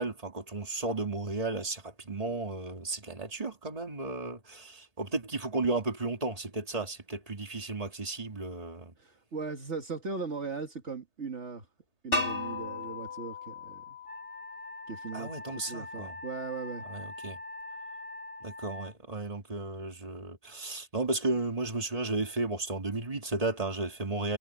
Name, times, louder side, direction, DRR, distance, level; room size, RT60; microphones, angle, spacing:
voice 1, 0.0-8.9 15.1-16.1 16.9-17.4 18.4-24.4, right 2 dB, 30° right, 2.5 m, -34 dB
voice 2, 9.0-11.7 12.0-14.0 14.9-16.8, right 4 dB, 65° right, 2.2 m, -38 dB
sound 1, 12.1-15.0, left 2 dB, 45° left, 3.4 m, -35 dB
Wind instrument woodwind instrument, 14.1-18.9, left 2 dB, 30° left, 1.2 m, -43 dB
omnidirectional pair, 1.3 m